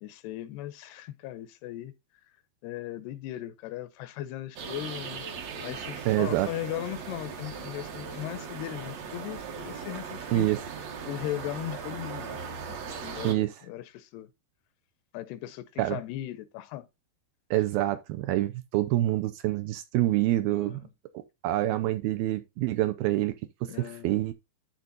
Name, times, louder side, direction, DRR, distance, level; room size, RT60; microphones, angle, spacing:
voice 1, 0.0-1.9 2.6-5.3 5.6-10.5 11.1-12.8 13.0-14.3 15.1-16.9 20.4-20.9 23.7-24.3, left 14 dB, 85° left, 2.8 m, -38 dB
sound 1, 4.6-13.3, right 6 dB, 60° right, 1.9 m, -39 dB
voice 2, 6.1-6.5 10.3-10.6 13.2-13.5 15.8-16.0 17.5-20.8 21.4-23.3 23.8-24.3, right 15 dB, 80° right, 2.3 m, -26 dB
12.0 x 4.1 x 3.9 m
omnidirectional pair, 4.8 m